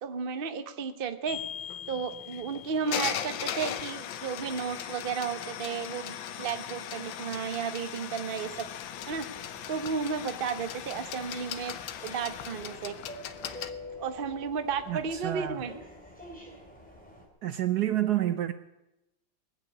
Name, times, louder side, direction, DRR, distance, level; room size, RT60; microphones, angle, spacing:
voice 1, 0.0-1.4 1.9-8.5 9.1-9.3 9.7-11.7 12.0-12.9 14.0-15.7, right 6 dB, 40° right, 0.8 m, -33 dB
sound 1, 1.3-13.7, left 10 dB, 80° left, 1.5 m, -38 dB
sound 2, 8.4-17.3, left 1 dB, 5° left, 3.3 m, -47 dB
voice 2, 14.9-15.6 17.4-18.5, right 13 dB, 65° right, 1.1 m, -28 dB
20.5 x 7.8 x 8.4 m
omnidirectional pair, 2.1 m